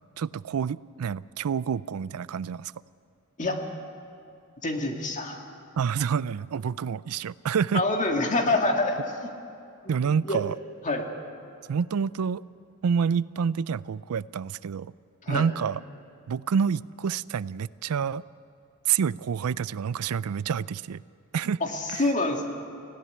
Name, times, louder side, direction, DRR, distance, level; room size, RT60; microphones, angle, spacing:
voice 1, 0.2-2.7 5.8-7.8 9.9-10.6 11.7-12.4 12.8-14.9 15.3-15.8 16.3-18.2 18.9-21.0 21.3-21.6 21.9-22.0, right 6 dB, 85° right, 19 dB, 0.4 m, -28 dB
voice 2, 4.6-5.4 7.7-9.3 9.8-10.0 10.2-10.4 10.8-11.1 15.2-15.4 21.6-22.4, left 2 dB, 35° left, 3 dB, 1.9 m, -26 dB
18.0 x 16.0 x 9.6 m, 2.6 s
head